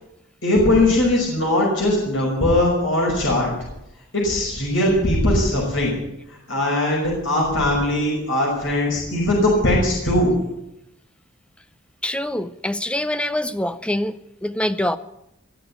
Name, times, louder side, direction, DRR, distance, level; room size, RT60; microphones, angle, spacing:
voice 1, 0.4-3.5 4.1-6.0 6.3-10.3, left 1 dB, 65° left, -3 dB, 5.7 m, -20 dB
voice 2, 12.0-15.0, left 1 dB, 5° left, 12 dB, 0.5 m, -25 dB
19.5 x 7.0 x 9.9 m, 0.87 s
head